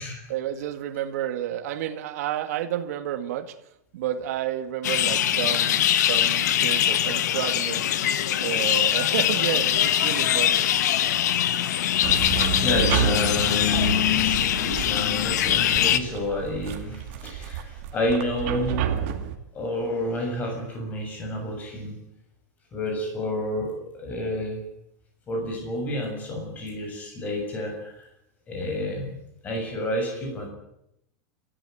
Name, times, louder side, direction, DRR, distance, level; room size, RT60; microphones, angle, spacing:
voice 1, 0.3-3.5 3.9-7.8 8.4-10.7, right 11 dB, 65° right, 2.0 m, -30 dB
sound 1, 4.8-16.0, left 11 dB, 80° left, 1.7 m, -22 dB
sound 2, 12.0-19.4, right 8 dB, 45° right, 2.4 m, -30 dB
voice 2, 12.6-13.7 14.1-19.0 19.5-22.0 22.7-23.7 23.9-24.6 25.3-28.1 28.5-29.2 29.4-30.5, left 1 dB, 15° left, 6.9 m, -30 dB
29.5 x 14.0 x 9.2 m
supercardioid pair, 175°, 9 cm